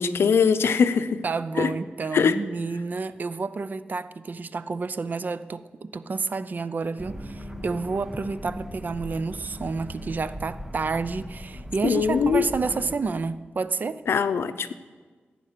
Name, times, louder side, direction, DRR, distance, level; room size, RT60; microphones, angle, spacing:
voice 1, 0.0-1.2 1.6-1.7 2.1-2.4 11.8-12.5 14.1-14.7, left 6 dB, 80° left, 12 dB, 0.6 m, -21 dB
voice 2, 1.2-14.0, right 4 dB, 45° right, 14 dB, 0.5 m, -30 dB
sound 1, 7.0-13.0, equal, 10° right, 1.1 m, -39 dB
15.0 x 8.7 x 6.7 m, 1.4 s
wide cardioid pair, 115°, 4 cm